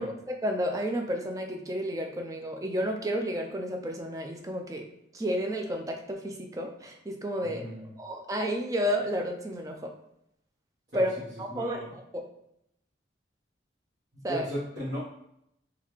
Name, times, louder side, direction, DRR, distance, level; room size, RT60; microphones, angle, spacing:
voice 1, 0.0-4.9 5.1-7.6 8.0-9.9 10.9-11.1 11.4-12.0 14.2-14.5, equal, 20° right, 3 dB, 0.3 m, -31 dB
voice 2, 7.4-7.9 10.9-11.9 14.2-15.0, equal, 50° right, -12 dB, 1.1 m, -36 dB
3.7 x 2.3 x 3.0 m, 0.79 s
head